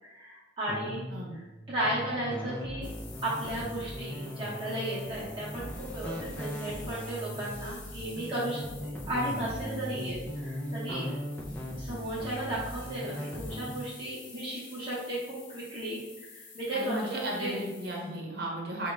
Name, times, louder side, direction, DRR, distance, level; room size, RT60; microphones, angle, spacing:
voice 1, 0.0-2.9 3.2-11.0 11.8-17.6, right 1 dB, 25° right, -8 dB, 0.8 m, -35 dB
sound 1, 0.7-13.8, equal, 10° left, 0.4 m, -39 dB
sound 2, 2.8-18.1, left 4 dB, 45° left, 0.7 m, -50 dB
voice 2, 16.7-18.9, right 1 dB, 55° right, -2 dB, 0.9 m, -35 dB
4.8 x 2.2 x 3.2 m, 1.1 s
head